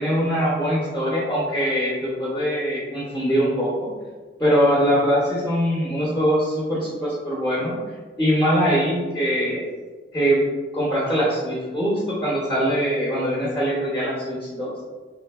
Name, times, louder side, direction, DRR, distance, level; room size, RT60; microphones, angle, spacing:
voice 1, 0.0-3.9 4.4-7.7 8.2-9.6 10.1-10.4 10.7-14.7, equal, 15° left, -7 dB, 0.6 m, -22 dB
3.1 x 2.6 x 2.2 m, 1.4 s
head